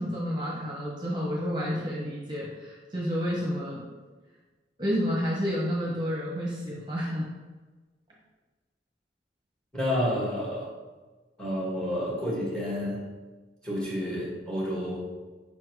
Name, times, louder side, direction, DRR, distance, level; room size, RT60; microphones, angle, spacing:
voice 1, 0.0-3.8 4.8-7.3, equal, 25° right, -5 dB, 1.1 m, -30 dB
voice 2, 9.7-10.7 11.4-13.0 13.6-15.0, equal, 5° left, -5 dB, 1.8 m, -30 dB
5.5 x 4.5 x 4.7 m, 1.3 s
head